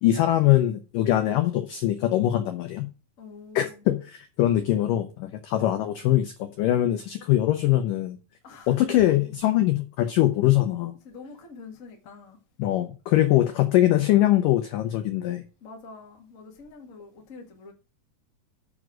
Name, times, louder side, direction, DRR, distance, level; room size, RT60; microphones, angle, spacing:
voice 1, 0.0-2.9 3.6-8.2 8.7-10.9 12.6-15.4, left 13 dB, 85° left, 1.9 m, -22 dB
voice 2, 3.2-3.8 8.4-9.7 11.0-12.4 13.1-13.2 15.6-17.7, left 4 dB, 45° left, 1.0 m, -46 dB
7.1 x 6.2 x 6.2 m
omnidirectional pair, 4.9 m